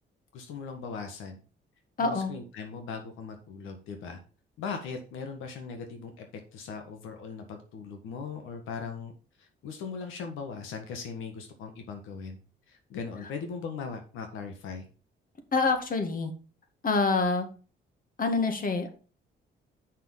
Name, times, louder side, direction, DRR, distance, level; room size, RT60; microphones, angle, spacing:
voice 1, 0.3-1.4 2.0-4.2 4.6-6.3 6.5-9.1 9.4-12.4 12.7-14.9, left 5 dB, 90° left, 5 dB, 1.6 m, -39 dB
voice 2, 2.0-2.3 15.5-16.3 16.8-17.5 18.2-18.9, left 4 dB, 45° left, 6 dB, 2.1 m, -26 dB
7.4 x 5.8 x 5.4 m, 0.37 s
cardioid pair, 90°, 20 cm